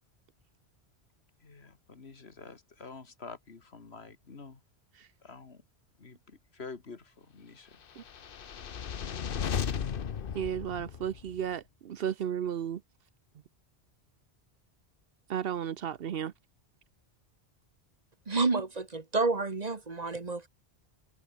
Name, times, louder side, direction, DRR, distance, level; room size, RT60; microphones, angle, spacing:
voice 1, 1.4-4.6 5.2-5.6 6.0-7.8, left 4 dB, 75° left, 2.2 m, -48 dB
sound 1, 8.0-11.4, left 7 dB, 60° left, 1.0 m, -35 dB
voice 2, 10.3-12.8 15.3-16.3, right 9 dB, 65° right, 0.9 m, -34 dB
voice 3, 18.3-20.5, right 3 dB, 40° right, 1.4 m, -29 dB
omnidirectional pair, 1.1 m